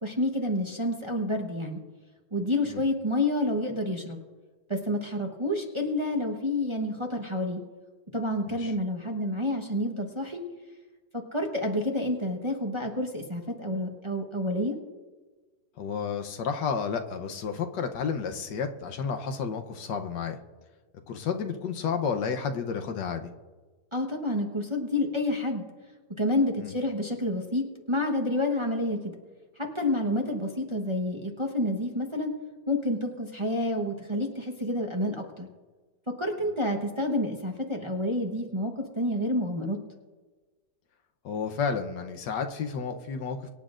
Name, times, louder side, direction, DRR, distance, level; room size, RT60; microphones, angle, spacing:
voice 1, 0.0-1.8 2.3-4.2 4.7-7.6 8.1-10.4 11.1-14.7 23.9-25.6 26.2-29.1 29.6-32.3 32.7-35.5 36.1-39.8, left 1 dB, 20° right, 1 dB, 0.9 m, -29 dB
voice 2, 15.8-20.4 21.1-23.3 26.6-26.7 41.2-43.5, left 6 dB, 85° left, 5 dB, 1.5 m, -31 dB
24.5 x 9.6 x 2.5 m, 1.3 s
omnidirectional pair, 1.8 m